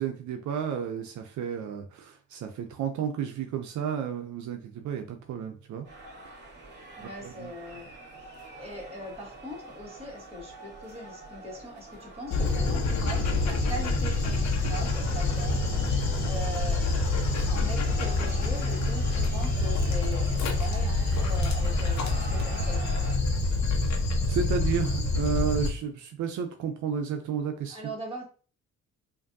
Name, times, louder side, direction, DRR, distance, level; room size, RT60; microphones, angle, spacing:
voice 1, 0.0-5.9 7.0-7.5 24.3-27.8, right 7 dB, 75° right, 4 dB, 0.6 m, -32 dB
sound 1, 5.8-23.2, right 2 dB, 35° right, 2.0 m, -45 dB
voice 2, 7.0-7.9 8.6-15.6 16.2-17.0 17.5-22.9 27.7-28.2, equal, 20° right, -3 dB, 2.0 m, -40 dB
Dog, 12.3-25.7, left 3 dB, 65° left, 1.1 m, -26 dB
4.9 x 2.6 x 2.6 m, 0.40 s
cardioid pair, 90°, 30 cm